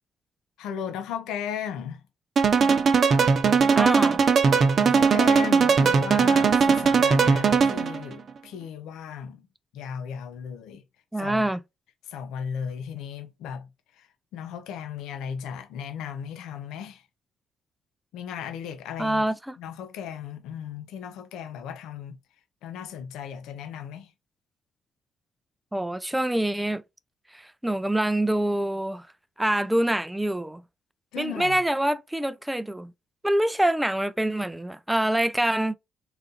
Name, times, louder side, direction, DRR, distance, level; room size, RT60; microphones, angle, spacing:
voice 1, 0.6-2.0 4.8-9.4 9.7-10.8 11.2-11.5 12.1-13.7 14.3-17.0 18.1-19.2 19.6-22.2 22.6-24.1 31.1-31.6, left 8 dB, 90° left, 0.6 m, -36 dB
sound 1, 2.4-8.0, right 5 dB, 50° right, 0.7 m, -19 dB
voice 2, 3.7-4.2 11.1-11.6 19.0-19.6 25.7-26.8 27.3-29.1 29.4-30.6 31.2-32.9 33.2-35.8, right 1 dB, 5° right, 0.4 m, -25 dB
3.9 x 2.6 x 4.0 m
cardioid pair, 90°, 0 cm